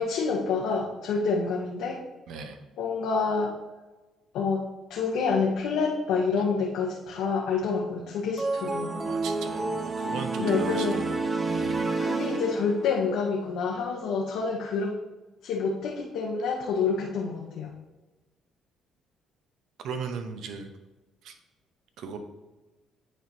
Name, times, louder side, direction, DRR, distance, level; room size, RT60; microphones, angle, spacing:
voice 1, 0.0-2.0 2.8-3.5 4.3-8.9 10.4-11.0 12.0-14.9 15.4-17.7, left 5 dB, 80° left, -2 dB, 0.8 m, -28 dB
voice 2, 2.3-2.6 9.1-11.2 11.5-12.0 19.8-20.7 21.2-21.3 22.0-22.2, right 5 dB, 75° right, 6 dB, 0.8 m, -37 dB
sound 1, 8.4-13.0, right 3 dB, 30° right, 0.7 m, -29 dB
9.1 x 4.5 x 2.7 m, 1.2 s
cardioid pair, 90°, 0 cm